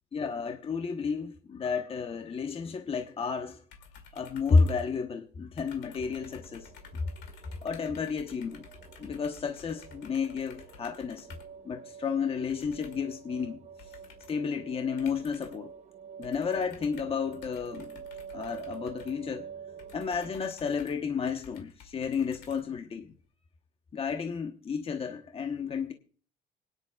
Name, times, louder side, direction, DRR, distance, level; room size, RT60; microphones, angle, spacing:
voice 1, 0.1-3.6 4.1-6.7 7.6-8.6 9.0-11.3 11.6-13.6 14.3-15.7 16.2-18.0 18.3-19.5 19.9-23.1 23.9-25.9, left 5 dB, 35° left, 1.0 m, -31 dB
sound 1, 3.7-5.3 5.6-11.6 12.5-13.2 13.8-14.5 15.0-15.7 16.2-23.0, left 5 dB, 85° left, 2.5 m, -53 dB
sound 2, 5.6-20.3, right 7 dB, 45° right, 1.0 m, -48 dB
25.5 x 10.0 x 2.3 m
cardioid pair, 110°, 17 cm